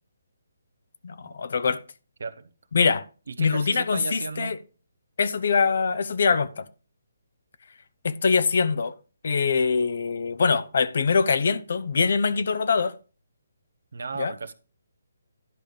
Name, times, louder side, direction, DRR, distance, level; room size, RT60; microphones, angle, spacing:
voice 1, 1.0-1.8 2.7-3.0 3.4-4.6 5.2-6.7 8.0-8.9 9.2-12.9 14.2-14.3, left 5 dB, 60° left, 0.8 m, -23 dB
voice 2, 2.2-2.5 3.3-4.5 13.9-14.5, right 4 dB, 65° right, 0.9 m, -35 dB
11.0 x 5.0 x 5.1 m
figure-of-eight pair, 145°, 0 cm